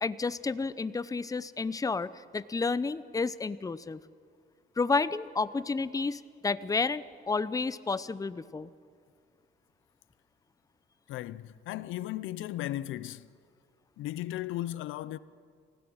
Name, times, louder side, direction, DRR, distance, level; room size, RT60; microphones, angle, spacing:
voice 1, 0.0-4.0 4.8-8.7, left 4 dB, 15° left, 0.6 m, -31 dB
voice 2, 11.1-13.3 14.0-15.2, left 14 dB, 85° left, 0.6 m, -36 dB
28.5 x 16.0 x 6.3 m
cardioid pair, 90°, 20 cm